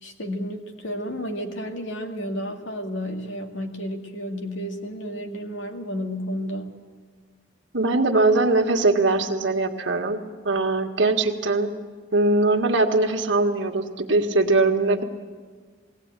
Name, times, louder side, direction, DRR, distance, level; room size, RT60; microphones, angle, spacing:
voice 1, 0.0-6.8, equal, 75° left, 3 dB, 2.2 m, -32 dB
voice 2, 7.7-11.7 12.1-15.0, right 2 dB, 70° right, 2 dB, 1.7 m, -21 dB
21.0 x 17.0 x 9.0 m, 1.5 s
head